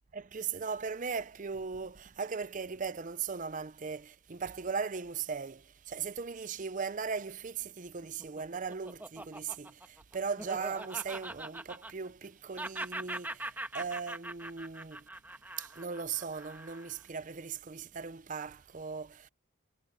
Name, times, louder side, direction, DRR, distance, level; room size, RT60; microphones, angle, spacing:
voice 1, 0.1-19.3, right 5 dB, 35° right, 0.5 m, -38 dB
Laughter, 8.0-12.3 12.6-17.0, right 2 dB, 10° right, 1.2 m, -42 dB
head